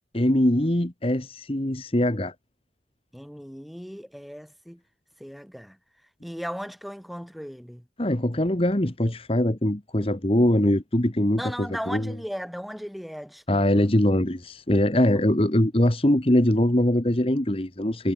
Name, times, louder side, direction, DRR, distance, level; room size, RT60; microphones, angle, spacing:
voice 1, 0.1-2.3 8.0-11.4 11.9-12.1 13.5-18.1, left 1 dB, 30° left, 1.4 m, -22 dB
voice 2, 3.1-4.8 5.2-5.8 6.2-7.8 11.4-13.9 15.1-15.2, equal, ahead, 2.7 m, -37 dB
head